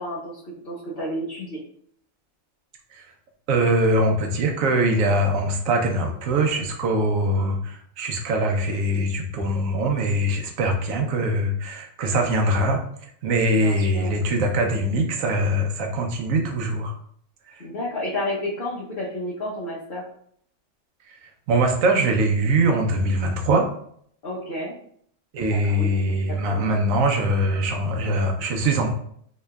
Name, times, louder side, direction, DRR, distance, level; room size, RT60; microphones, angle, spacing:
voice 1, 0.0-1.6 13.5-14.2 17.6-20.1 24.2-24.7 25.4-26.2 26.5-26.7, left 1 dB, 50° left, -5 dB, 0.9 m, -31 dB
voice 2, 3.5-12.8 13.2-16.9 17.5-17.6 21.5-23.7 25.3-28.9, right 1 dB, 85° right, 3 dB, 1.1 m, -22 dB
3.7 x 3.2 x 2.2 m, 0.64 s
omnidirectional pair, 1.4 m